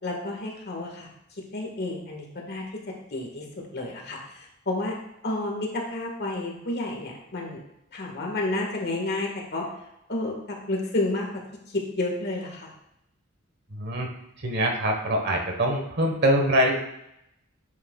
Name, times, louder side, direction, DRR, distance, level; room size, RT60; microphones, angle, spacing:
voice 1, 0.0-1.1 1.5-3.4 3.7-5.0 5.2-7.6 7.9-9.7 10.1-11.4 11.7-12.7, left 2 dB, 55° left, 0 dB, 1.6 m, -30 dB
voice 2, 13.7-14.1 14.4-16.7, right 1 dB, 55° right, 2 dB, 1.3 m, -24 dB
9.4 x 6.6 x 2.4 m, 0.80 s
head